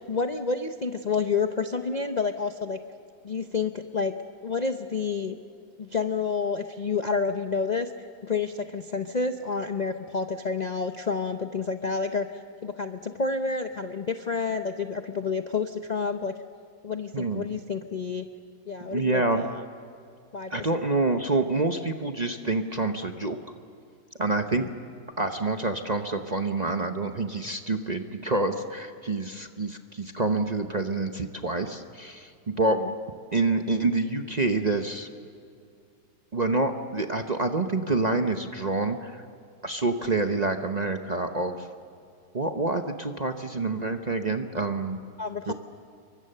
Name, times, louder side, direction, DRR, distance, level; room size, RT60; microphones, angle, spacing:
voice 1, 0.1-2.8 3.2-4.1 4.4-5.4 5.8-7.9 8.2-12.3 12.6-16.3 16.8-18.3 18.7-19.6 20.3-20.6 24.5-24.7 32.8-32.9 45.2-45.5, left 4 dB, 45° left, 7 dB, 0.5 m, -29 dB
voice 2, 18.9-19.4 20.5-23.4 24.2-24.7 25.2-32.8 33.3-35.1 36.3-39.2 39.6-41.7 42.3-45.0 45.5-45.6, right 3 dB, 35° right, 5 dB, 0.7 m, -27 dB
28.0 x 23.5 x 6.7 m, 2.4 s
omnidirectional pair, 1.9 m